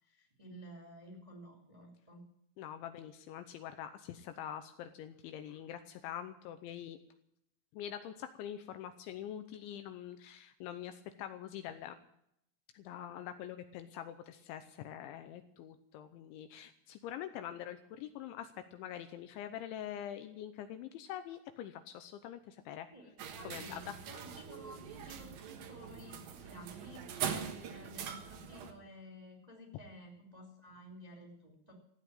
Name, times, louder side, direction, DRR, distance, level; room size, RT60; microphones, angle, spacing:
voice 1, 0.0-2.2 22.9-31.7, equal, 10° right, 0 dB, 2.2 m, -53 dB
voice 2, 2.6-7.0 7.7-12.0 12.7-22.9 23.4-24.0, left 10 dB, 80° left, 9 dB, 2.9 m, -45 dB
sound 1, 23.2-28.7, right 8 dB, 65° right, 2.3 m, -42 dB
15.5 x 8.9 x 9.0 m, 0.74 s
omnidirectional pair, 5.8 m